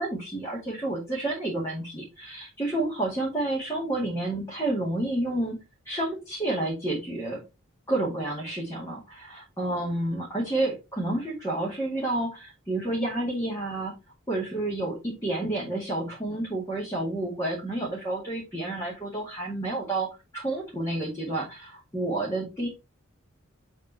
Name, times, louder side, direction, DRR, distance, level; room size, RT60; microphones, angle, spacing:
voice 1, 0.0-5.6 5.9-7.4 7.9-13.9 14.3-20.1 20.3-22.7, right 2 dB, 15° left, -4 dB, 2.2 m, -30 dB
7.5 x 3.7 x 4.2 m, 0.25 s
head